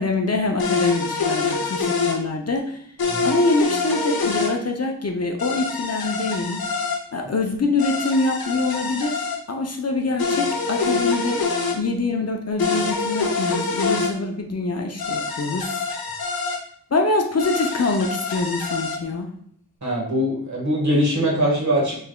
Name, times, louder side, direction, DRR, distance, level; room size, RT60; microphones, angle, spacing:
voice 1, 0.0-2.9 3.2-6.6 7.1-11.4 11.7-15.8 16.9-19.3, left 3 dB, 45° left, 2 dB, 0.5 m, -24 dB
sound 1, 0.6-2.2 3.0-4.5 5.4-7.0 7.8-9.4 10.2-11.8 12.6-14.1 15.0-16.6 17.4-19.0, left 4 dB, 90° left, 0.6 m, -25 dB
voice 2, 19.8-22.0, equal, 50° right, -4 dB, 1.4 m, -22 dB
3.5 x 3.4 x 2.2 m, 0.63 s
wide cardioid pair, 45°, 36 cm